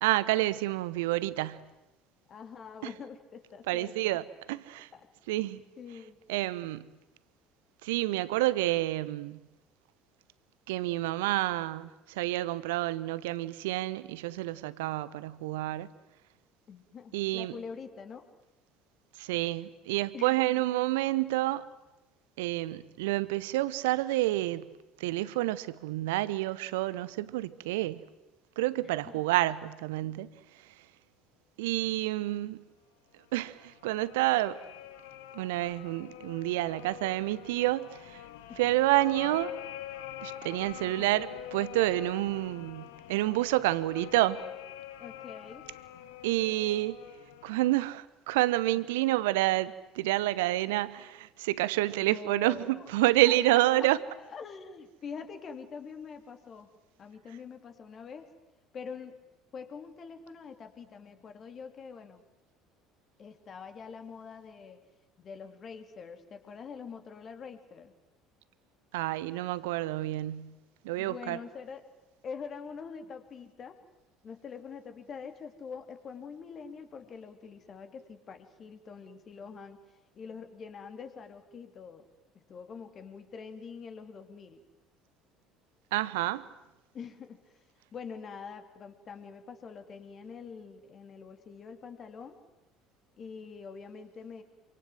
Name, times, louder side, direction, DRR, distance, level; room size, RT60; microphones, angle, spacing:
voice 1, 0.0-1.6 3.7-4.2 4.5-4.9 5.3-5.6 6.3-6.9 7.8-9.4 10.7-15.9 17.1-17.5 19.2-21.7 22.4-24.7 25.0-28.0 28.6-30.3 31.6-32.6 33.3-34.6 35.3-38.2 38.6-39.5 40.2-44.4 46.2-47.0 47.4-54.0 68.9-70.5 70.8-71.4 85.9-86.5, right 17 dB, 65° right, 1.0 m, -29 dB
voice 2, 2.3-4.2 4.6-5.1 5.4-5.5 5.8-6.2 16.7-18.2 20.1-20.6 28.8-29.2 38.5-38.6 40.8-41.2 45.0-45.7 48.7-48.9 52.1-53.9 54.2-56.7 57.0-58.3 58.7-59.2 59.5-62.3 63.2-64.8 65.2-67.9 71.0-71.8 72.2-73.8 74.2-79.8 80.1-82.0 82.3-84.6 86.9-87.6 87.9-92.4 93.2-94.4, left 6 dB, 40° left, 3.2 m, -45 dB
sound 1, 33.3-47.7, left 11 dB, 65° left, 1.3 m, -45 dB
27.5 x 25.5 x 7.9 m
figure-of-eight pair, 60°, 0 cm